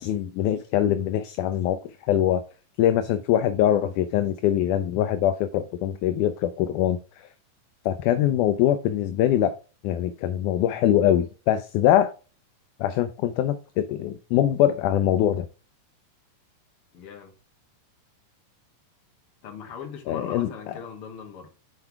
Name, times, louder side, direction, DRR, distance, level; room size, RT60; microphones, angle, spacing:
voice 1, 0.0-2.4 2.8-7.3 7.9-9.6 9.8-12.1 12.8-15.5 20.1-20.5, left 11 dB, 80° left, 9 dB, 1.8 m, -23 dB
voice 2, 16.9-17.3 19.4-21.5, left 6 dB, 50° left, 2 dB, 2.0 m, -39 dB
8.0 x 4.5 x 3.5 m, 0.34 s
omnidirectional pair, 4.0 m